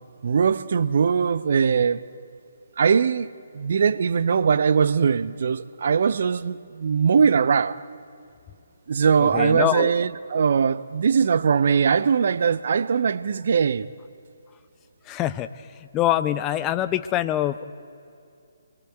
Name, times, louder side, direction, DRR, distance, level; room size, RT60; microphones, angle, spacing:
voice 1, 0.2-2.1 2.8-3.3 3.5-7.8 8.9-13.9, right 6 dB, 50° right, 0.8 m, -21 dB
voice 2, 9.2-9.9 15.1-15.5 15.9-17.6, left 13 dB, 20° left, 0.6 m, -24 dB
28.5 x 22.0 x 7.8 m
figure-of-eight pair, 140°, 0 cm